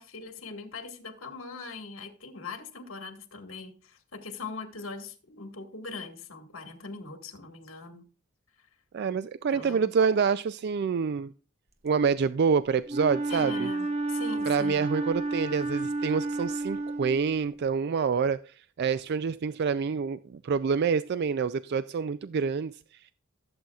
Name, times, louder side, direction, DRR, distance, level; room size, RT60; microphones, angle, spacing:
voice 1, 0.0-8.0 9.5-9.9 13.3-14.9, left 4 dB, 75° left, 1.8 m, -41 dB
voice 2, 8.9-11.3 11.8-13.7 14.5-23.1, right 6 dB, 50° right, 0.3 m, -27 dB
Wind instrument woodwind instrument, 12.9-17.6, right 2 dB, 30° right, 1.0 m, -31 dB
15.5 x 7.9 x 2.4 m
head